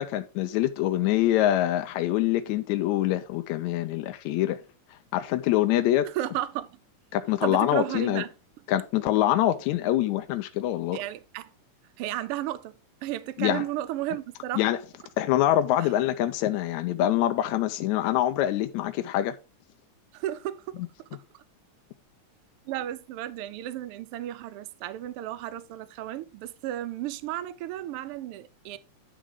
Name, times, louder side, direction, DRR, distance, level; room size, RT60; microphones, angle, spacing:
voice 1, 0.0-4.6 5.1-6.1 7.1-8.2 8.7-11.0 13.4-13.7 14.6-14.8 15.2-19.4, left 13 dB, 80° left, 1.9 m, -25 dB
voice 2, 6.0-6.8 7.4-8.3 10.9-11.5 12.0-12.7 13.0-14.7 15.8-15.9 20.1-20.8 21.1-21.2 22.7-28.8, right 13 dB, 90° right, 1.2 m, -33 dB
10.0 x 3.8 x 4.6 m
omnidirectional pair, 3.4 m